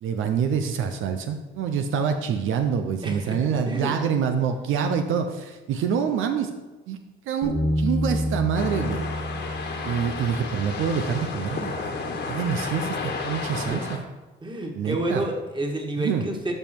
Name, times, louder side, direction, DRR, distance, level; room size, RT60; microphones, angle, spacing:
voice 1, 0.0-6.5 6.9-7.0 7.3-9.1 9.8-11.7 12.3-14.0 14.7-15.2 16.0-16.2, right 7 dB, 85° right, 6 dB, 0.8 m, -26 dB
voice 2, 3.0-3.9 13.7-13.8 14.4-16.5, right 1 dB, 25° right, 2 dB, 1.9 m, -29 dB
Bass guitar, 7.4-13.7, equal, 70° right, 2.8 m, -31 dB
sound 1, 8.5-14.0, left 4 dB, 65° left, 1.8 m, -32 dB
12.0 x 5.6 x 4.6 m, 1.2 s
cardioid pair, 90°, 20 cm